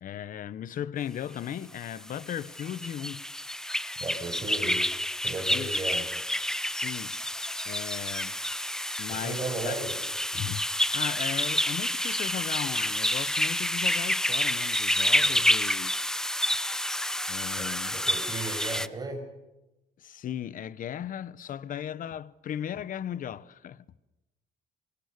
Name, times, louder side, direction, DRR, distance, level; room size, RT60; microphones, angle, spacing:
voice 1, 0.0-3.2 4.5-4.7 5.5-5.8 6.7-7.2 7.6-8.4 9.0-9.7 10.3-15.9 17.3-18.0 20.0-23.8, left 10 dB, 55° left, 1.1 m, -37 dB
sound 1, 2.1-18.9, left 1 dB, 5° left, 0.9 m, -29 dB
voice 2, 4.0-4.9 5.2-6.1 9.1-10.0 15.2-15.5 17.6-19.3, right 3 dB, 25° right, 7.0 m, -36 dB
27.5 x 25.0 x 6.8 m
cardioid pair, 110°, 17 cm